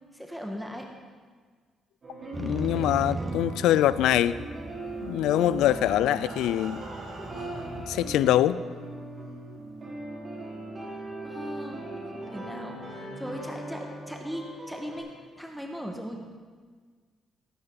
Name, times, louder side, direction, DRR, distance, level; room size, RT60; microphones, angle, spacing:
voice 1, 0.1-0.9 11.2-16.2, equal, ahead, 1 dB, 1.5 m, -38 dB
sound 1, 2.0-15.0, right 2 dB, 40° right, 4.3 m, -39 dB
Motorcycle, 2.3-8.4, right 2 dB, 20° right, 0.5 m, -39 dB
voice 2, 2.4-4.4 5.0-6.8 7.9-8.6, left 12 dB, 90° left, 16 dB, 0.4 m, -24 dB
Breathing, 5.0-8.0 8.7-8.8 9.2-9.3 9.7-9.8, right 2 dB, 75° right, 3.1 m, -45 dB
17.5 x 9.5 x 4.0 m, 1.5 s
cardioid pair, 90°, 0 cm